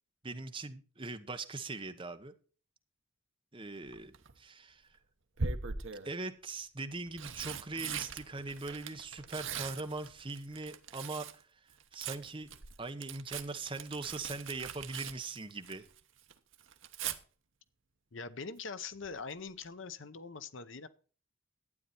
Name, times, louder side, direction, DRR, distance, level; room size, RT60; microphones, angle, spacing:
voice 1, 0.2-2.3 3.5-4.9 6.0-11.5 11.9-12.5 12.8-15.9, right 3 dB, 25° right, 8 dB, 0.9 m, -41 dB
Tearing, 3.9-4.3 5.4-6.1 6.9-11.4 11.7-16.0 16.3-17.2 19.0-19.3 19.6-19.7, right 5 dB, 60° right, 1.0 m, -41 dB
voice 2, 18.1-20.9, left 5 dB, 60° left, 13 dB, 0.8 m, -43 dB
12.0 x 9.2 x 4.2 m, 0.40 s
head